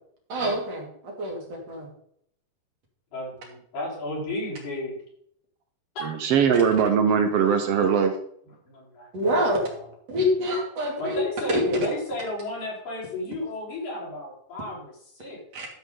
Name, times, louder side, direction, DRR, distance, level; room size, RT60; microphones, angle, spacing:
voice 1, 0.3-1.9 9.1-9.6 10.1-11.2 11.7-11.8 15.5-15.7, equal, 50° right, 0 dB, 3.6 m, -26 dB
voice 2, 3.1-4.9 6.0-6.1 8.7-9.8 11.0-15.4, left 1 dB, 80° left, -5 dB, 6.1 m, -33 dB
voice 3, 6.0-8.2, right 7 dB, 70° right, 7 dB, 1.5 m, -21 dB
13.0 x 7.7 x 3.9 m, 0.67 s
omnidirectional pair, 3.8 m